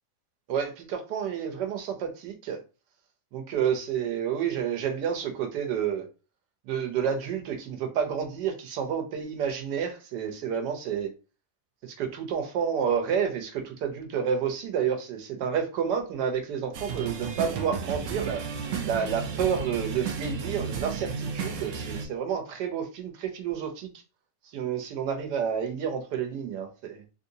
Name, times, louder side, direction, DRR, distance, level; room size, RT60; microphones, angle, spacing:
voice 1, 0.5-2.6 3.3-6.1 6.7-11.1 11.8-18.4 18.8-23.9 24.5-27.0, right 7 dB, 85° right, 1.3 m, -30 dB
sound 1, 16.7-22.1, right 5 dB, 70° right, 0.8 m, -33 dB
3.3 x 2.7 x 2.7 m
omnidirectional pair, 1.8 m